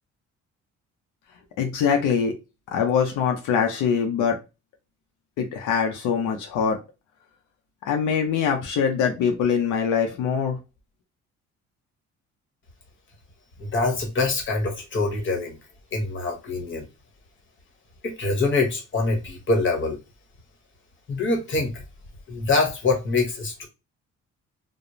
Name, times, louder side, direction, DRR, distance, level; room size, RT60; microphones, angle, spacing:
voice 1, 1.6-2.3 2.7-4.4 5.4-6.8 7.9-10.6, left 7 dB, 90° left, 0.6 m, -23 dB
voice 2, 13.6-15.6 15.9-16.8 18.0-20.0 21.1-21.8 22.3-23.7, left 3 dB, 40° left, 1.0 m, -24 dB
2.4 x 2.0 x 3.0 m
cardioid pair, 90°, 30 cm